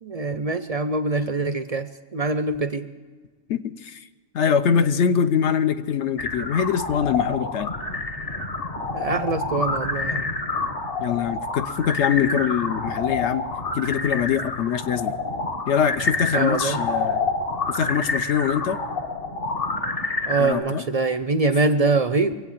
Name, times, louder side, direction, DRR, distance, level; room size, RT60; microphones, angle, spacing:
voice 1, 0.0-2.9 8.9-10.4 16.3-16.8 20.3-22.4, right 3 dB, 50° right, 11 dB, 0.4 m, -24 dB
voice 2, 3.5-4.0 4.3-7.7 11.0-13.5 13.7-15.1 15.7-17.2 17.7-18.8 20.4-20.8, left 7 dB, 70° left, 9 dB, 1.0 m, -23 dB
sound 1, 6.2-20.5, left 3 dB, 50° left, 1.7 m, -28 dB
23.0 x 8.5 x 7.2 m, 1.4 s
omnidirectional pair, 1.3 m